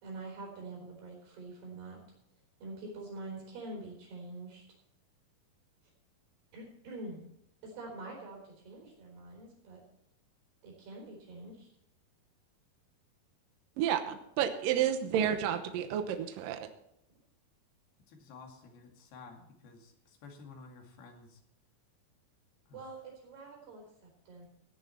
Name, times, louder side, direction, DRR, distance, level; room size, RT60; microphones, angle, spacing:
voice 1, 0.0-2.0 2.6-4.6 6.5-7.2 7.6-9.8 10.6-11.7 22.7-24.5, right 2 dB, 90° right, -2 dB, 6.0 m, -45 dB
voice 2, 13.8-16.7, right 9 dB, 70° right, 7 dB, 2.4 m, -31 dB
voice 3, 18.1-21.4 22.7-22.8, left 4 dB, 75° left, 2 dB, 4.1 m, -52 dB
16.5 x 10.5 x 4.4 m, 0.78 s
omnidirectional pair, 4.5 m